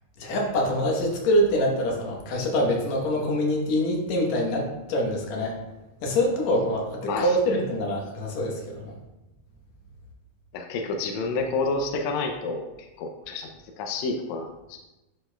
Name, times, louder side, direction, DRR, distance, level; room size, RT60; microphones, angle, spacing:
voice 1, 0.2-5.6 6.0-8.9, equal, 65° left, 0 dB, 2.2 m, -25 dB
voice 2, 10.5-13.5 13.8-14.8, left 3 dB, 85° left, 3 dB, 1.6 m, -29 dB
11.5 x 4.4 x 2.2 m, 1.0 s
omnidirectional pair, 3.8 m